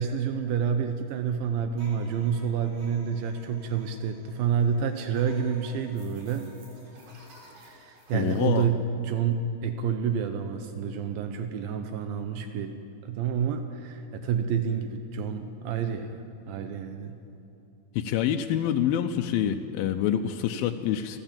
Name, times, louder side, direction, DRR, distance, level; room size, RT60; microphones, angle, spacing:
voice 1, 0.0-6.5 7.6-12.8 13.0-17.2, right 7 dB, 85° right, 7 dB, 2.7 m, -29 dB
sound 1, 1.7-8.6, equal, 55° right, 5.2 m, -53 dB
voice 2, 8.1-8.7 18.0-21.2, left 10 dB, 85° left, 4 dB, 2.5 m, -26 dB
29.0 x 12.5 x 7.5 m, 2.7 s
omnidirectional pair, 4.1 m